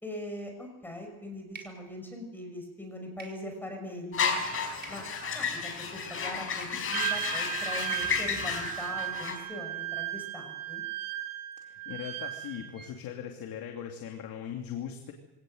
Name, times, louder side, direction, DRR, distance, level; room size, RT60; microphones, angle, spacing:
voice 1, 0.0-4.4 4.9-5.1 5.3-10.8, left 1 dB, 5° left, 3 dB, 5.7 m, -41 dB
sound 1, 1.5-1.8 3.2-3.4 4.8-5.0 6.2-7.1, right 5 dB, 25° right, 4.5 m, -47 dB
sound 2, 4.1-9.4, left 6 dB, 35° left, 5.1 m, -32 dB
Wind instrument woodwind instrument, 6.9-12.9, right 13 dB, 55° right, 2.9 m, -36 dB
voice 2, 11.6-15.1, left 9 dB, 55° left, 3 dB, 2.7 m, -39 dB
24.0 x 18.0 x 7.9 m, 0.96 s
cardioid pair, 135°, 40 cm